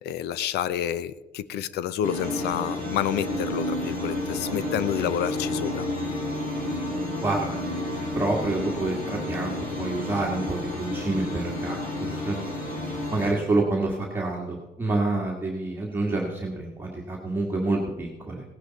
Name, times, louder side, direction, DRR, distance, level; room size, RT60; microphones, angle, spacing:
voice 1, 0.0-5.9, left 10 dB, 75° left, 17 dB, 0.6 m, -29 dB
sound 1, 2.0-13.3, left 1 dB, 50° left, 3.5 m, -31 dB
voice 2, 7.2-7.6 7.9-12.4 13.1-18.4, right 2 dB, 10° right, -2 dB, 1.7 m, -28 dB
17.5 x 9.9 x 4.0 m, 1.1 s
cardioid pair, 110°, 17 cm